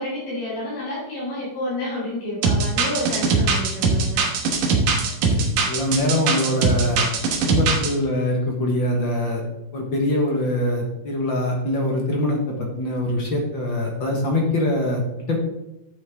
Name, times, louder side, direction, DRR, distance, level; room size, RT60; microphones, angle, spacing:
voice 1, 0.0-4.2, left 1 dB, 80° left, -7 dB, 5.8 m, -29 dB
sound 1, 2.4-7.9, right 4 dB, 65° right, 2.5 m, -21 dB
voice 2, 5.2-7.1 7.4-9.4 9.7-15.4, left 1 dB, 45° left, 0 dB, 1.6 m, -23 dB
11.5 x 7.3 x 3.7 m, 0.91 s
omnidirectional pair, 3.9 m